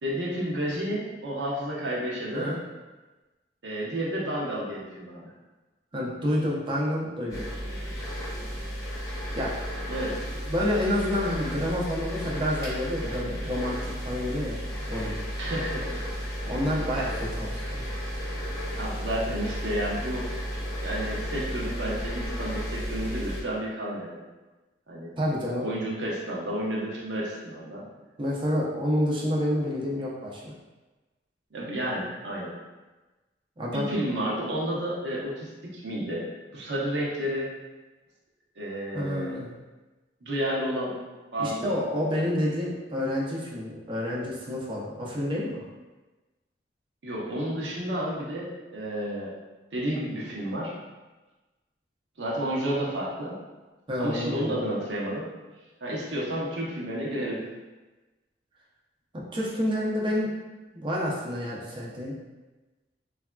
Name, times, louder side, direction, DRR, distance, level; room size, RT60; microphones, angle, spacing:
voice 1, 0.0-2.5 3.6-5.2 9.9-10.2 15.4-16.0 18.7-20.3 20.8-24.2 24.9-25.1 25.6-27.9 31.5-32.5 33.7-36.2 36.5-37.6 38.6-39.3 40.2-41.0 41.3-41.8 47.0-49.3 49.7-50.7 52.2-53.4 54.0-55.3 55.8-57.4, right 1 dB, 80° right, -5 dB, 0.7 m, -31 dB
voice 2, 5.9-7.5 9.3-9.5 10.5-14.6 14.9-15.2 16.5-17.9 25.2-25.6 28.2-30.5 33.6-33.9 38.9-39.5 41.4-45.6 53.9-54.6 59.3-60.3 60.7-62.1, left 1 dB, 30° right, -4 dB, 0.6 m, -29 dB
sound 1, 7.3-23.4, equal, 20° left, 0.7 m, -33 dB
3.3 x 2.3 x 2.2 m, 1.2 s
head